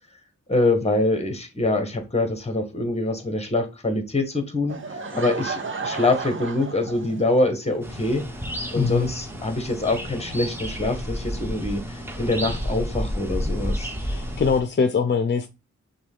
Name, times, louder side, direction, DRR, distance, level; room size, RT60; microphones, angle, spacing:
voice 1, 0.5-8.2 8.7-13.9, left 2 dB, 20° left, 1.3 m, -25 dB
Laughter / Crowd, 4.7-7.5, right 4 dB, 40° right, 0.8 m, -33 dB
sound 1, 7.8-14.6, equal, 10° right, 1.1 m, -31 dB
voice 2, 8.8-9.1 14.0-15.5, left 5 dB, 35° left, 0.5 m, -22 dB
6.0 x 2.3 x 3.6 m
cardioid pair, 55°, 30 cm